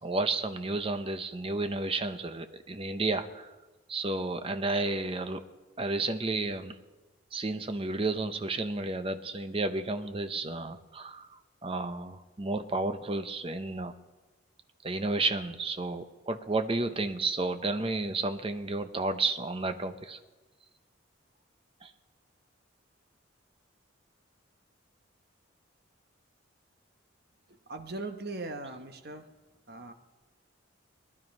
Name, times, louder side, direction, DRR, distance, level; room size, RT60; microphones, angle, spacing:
voice 1, 0.0-3.5 3.9-5.4 5.8-6.8 7.3-11.3 11.6-13.9 14.8-20.2 21.8-21.9, right 2 dB, 25° right, 9 dB, 0.7 m, -32 dB
voice 2, 27.7-29.2 29.7-29.9, right 2 dB, 50° right, 6 dB, 1.1 m, -39 dB
19.5 x 11.0 x 5.4 m, 1.2 s
head